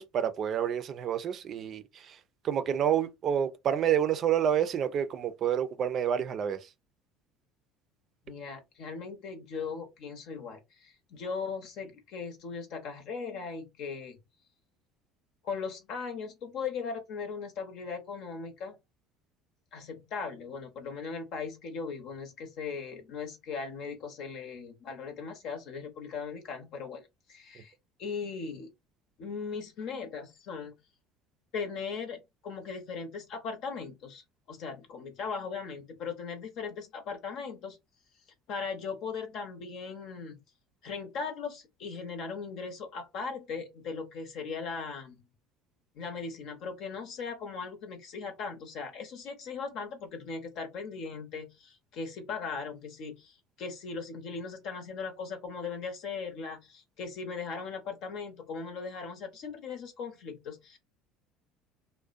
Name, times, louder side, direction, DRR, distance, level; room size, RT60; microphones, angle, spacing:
voice 1, 0.0-2.2 2.4-6.7, right 9 dB, 50° right, 0.4 m, -29 dB
voice 2, 8.3-14.2 15.4-18.8 19.7-27.7 28.0-28.7 29.2-30.7 31.5-37.8 38.5-40.4 40.8-45.2 45.9-60.8, left 5 dB, 65° left, 0.8 m, -38 dB
2.4 x 2.1 x 2.4 m
hypercardioid pair, 75°, 0 cm